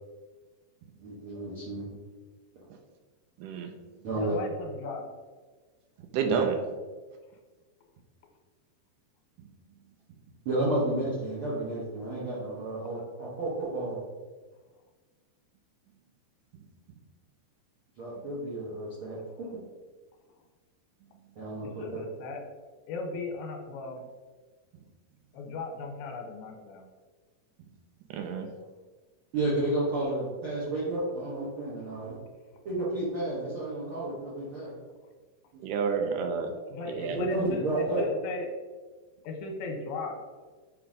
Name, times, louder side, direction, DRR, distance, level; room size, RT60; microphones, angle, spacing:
voice 1, 1.0-1.9 4.0-4.4 6.3-6.4 10.4-14.0 18.0-19.2 21.3-22.0 29.3-32.2 32.6-34.7 35.5-35.6 37.0-38.0, right 1 dB, 65° right, -8 dB, 1.3 m, -31 dB
voice 2, 3.4-3.7 6.1-6.5 28.1-28.5 35.6-36.5 36.9-37.2, right 6 dB, 85° right, 4 dB, 1.8 m, -29 dB
voice 3, 4.1-5.0 21.6-22.4 22.9-24.0 25.3-26.9 36.7-38.5 39.2-40.2, left 3 dB, 85° left, 3 dB, 2.5 m, -37 dB
7.9 x 3.0 x 4.9 m, 1.4 s
omnidirectional pair, 4.4 m